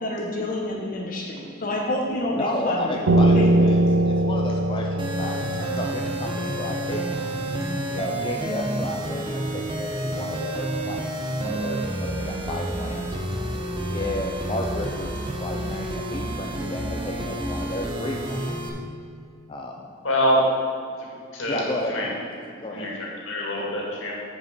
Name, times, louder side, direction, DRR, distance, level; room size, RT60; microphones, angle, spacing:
voice 1, 0.0-3.0 3.3-3.8, left 1 dB, 45° left, -2 dB, 1.0 m, -28 dB
voice 2, 2.3-3.8 4.1-7.1 7.9-13.0 13.9-18.7 19.5-19.9 21.5-22.1 22.6-22.9 23.6-23.7, left 1 dB, 25° left, 0 dB, 0.5 m, -32 dB
Piano, 3.1-8.3, right 1 dB, 75° right, 0.5 m, -22 dB
sound 1, 5.0-18.7, right 1 dB, 25° right, 0.7 m, -29 dB
voice 3, 20.0-20.6 21.3-21.6 21.9-22.1 22.7-24.1, equal, 80° left, -3 dB, 2.1 m, -24 dB
8.1 x 5.2 x 5.9 m, 2.2 s
head